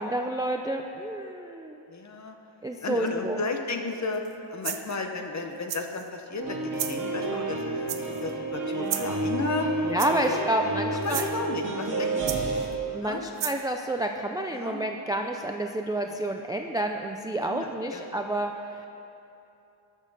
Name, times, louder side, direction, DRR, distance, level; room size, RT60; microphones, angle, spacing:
voice 1, 0.0-1.8 2.6-3.4 9.9-11.2 12.0-12.1 12.9-18.9, right 1 dB, 10° right, 3 dB, 0.3 m, -29 dB
voice 2, 1.9-2.4 2.8-4.2 4.5-9.7 10.1-10.6 10.9-12.6 13.0-13.3 14.5-14.8 17.4-18.1, left 3 dB, 35° left, 4 dB, 0.9 m, -33 dB
sound 1, 4.1-4.3 4.6-5.0 5.7-6.1 6.7-7.0 7.9-8.3 8.9-9.2 10.0-10.4 11.0-11.3 12.3-12.7 13.4-13.6, right 10 dB, 65° right, 0.7 m, -33 dB
sound 2, 6.4-12.7, right 2 dB, 40° right, 2.0 m, -30 dB
19.0 x 6.4 x 4.0 m, 2.8 s
wide cardioid pair, 145°, 48 cm